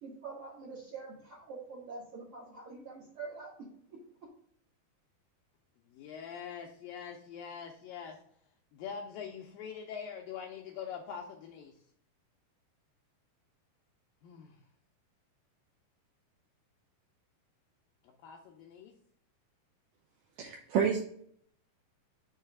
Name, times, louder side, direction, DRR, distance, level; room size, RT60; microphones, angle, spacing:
voice 1, 0.0-3.5 3.9-4.0, right 4 dB, 65° right, -4 dB, 1.4 m, -45 dB
voice 2, 5.9-8.2 8.7-11.7 14.2-14.6 18.0-18.9, left 7 dB, 80° left, 1 dB, 2.1 m, -44 dB
voice 3, 20.4-21.0, right 7 dB, 80° right, 0 dB, 2.0 m, -29 dB
6.6 x 3.2 x 5.9 m, 0.62 s
omnidirectional pair, 4.6 m